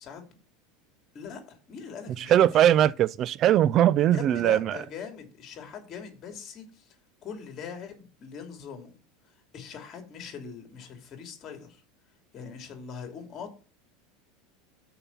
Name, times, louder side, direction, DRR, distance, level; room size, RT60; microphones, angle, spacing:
voice 1, 1.1-2.8 4.1-6.9 7.2-9.0 9.5-11.8 12.3-13.5, left 6 dB, 35° left, 2.8 m, -42 dB
voice 2, 2.2-4.8, right 11 dB, 40° right, 0.3 m, -21 dB
6.8 x 5.5 x 7.1 m
supercardioid pair, 135°, 0 cm